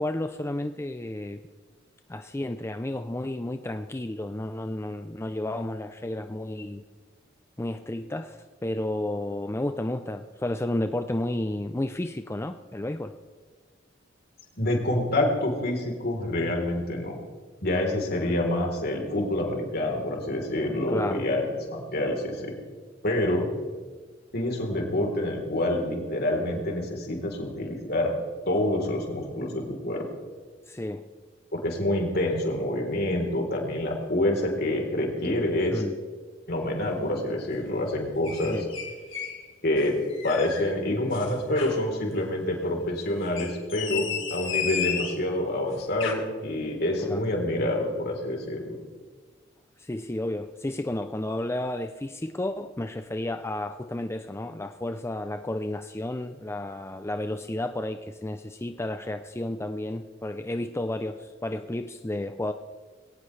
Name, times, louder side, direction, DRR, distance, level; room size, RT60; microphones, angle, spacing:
voice 1, 0.0-1.4 2.1-6.8 7.6-13.1 20.9-21.2 30.7-31.0 35.7-36.0 38.4-38.7 47.0-47.2 49.8-62.5, left 1 dB, 15° left, 7 dB, 0.5 m, -32 dB
voice 2, 14.6-17.2 17.6-21.4 21.7-22.5 23.0-23.5 24.3-28.1 28.5-30.1 31.5-35.8 36.5-38.6 39.6-40.0 40.2-48.8, left 1 dB, 55° left, 1 dB, 3.7 m, -27 dB
sound 1, 38.2-39.4 39.8-40.7 41.1-41.8 43.2-45.2 45.8-46.1, left 7 dB, 80° left, 3.0 m, -33 dB
21.0 x 18.0 x 3.3 m, 1.5 s
head